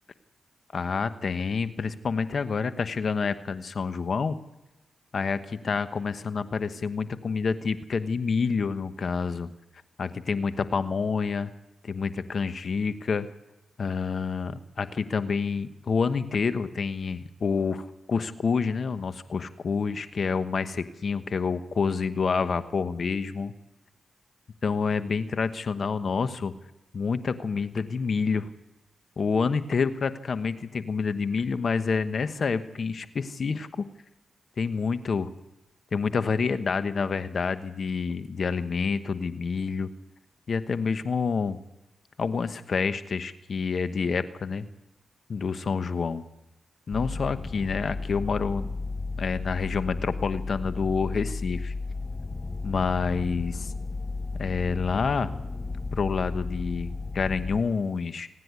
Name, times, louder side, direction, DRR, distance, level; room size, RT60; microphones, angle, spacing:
voice 1, 0.7-4.4 5.1-9.5 10.0-11.5 11.8-13.3 13.8-23.5 24.6-26.5 26.9-28.5 29.2-33.8 34.6-35.3 35.9-39.9 40.5-41.6 42.2-44.7 45.3-46.2 46.9-48.7 49.2-51.7 52.6-53.7 54.4-55.3 55.9-58.3, left 5 dB, 60° left, 11 dB, 1.1 m, -28 dB
sound 1, 46.9-57.6, left 3 dB, 25° left, 0.9 m, -33 dB
27.5 x 10.0 x 9.7 m, 0.96 s
cardioid pair, 55°, 0 cm